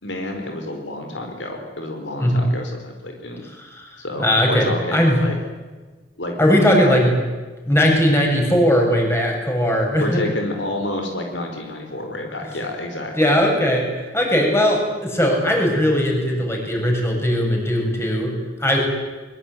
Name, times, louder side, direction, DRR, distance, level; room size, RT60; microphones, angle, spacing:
voice 1, 0.0-3.4 4.0-5.3 6.2-7.0 10.0-13.3, left 1 dB, 75° left, 3 dB, 4.7 m, -29 dB
voice 2, 4.2-5.2 6.4-7.1 7.7-10.2 13.2-13.8 14.1-18.3 18.6-18.8, equal, 15° left, 0 dB, 7.5 m, -18 dB
23.5 x 22.5 x 9.4 m, 1.3 s
head